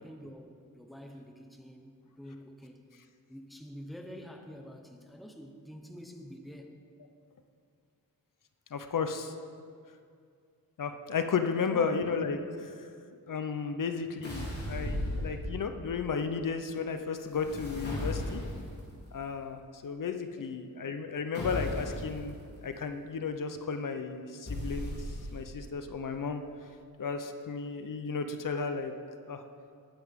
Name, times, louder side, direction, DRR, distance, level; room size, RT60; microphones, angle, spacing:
voice 1, 0.0-2.8 3.3-6.8 11.7-12.1 20.4-20.6, equal, ahead, 3 dB, 0.9 m, -47 dB
voice 2, 8.7-9.3 10.8-12.9 13.3-18.4 19.1-24.9 25.3-26.4 27.0-28.9 29.3-29.4, left 5 dB, 65° left, 7 dB, 0.8 m, -34 dB
sound 1, 14.2-15.8 17.3-18.8 21.3-22.2 24.5-25.6, left 1 dB, 40° left, 3.5 m, -36 dB
19.5 x 9.5 x 3.7 m, 2.3 s
wide cardioid pair, 155°, 35 cm